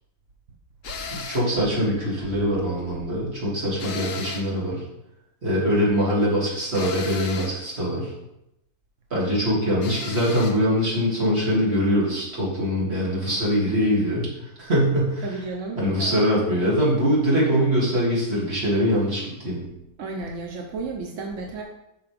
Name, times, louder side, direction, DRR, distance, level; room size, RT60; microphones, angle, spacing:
sound 1, 0.8-1.6 3.8-4.6 6.7-7.6 9.8-10.6, left 5 dB, 50° left, 1.1 m, -35 dB
voice 1, 1.1-4.8 5.4-8.1 9.1-14.3 14.6-15.2 15.8-19.6, equal, 30° right, -6 dB, 2.9 m, -23 dB
voice 2, 15.2-16.1 20.0-21.6, right 3 dB, 55° right, 1 dB, 0.9 m, -33 dB
10.5 x 5.9 x 3.5 m, 0.87 s
omnidirectional pair, 2.1 m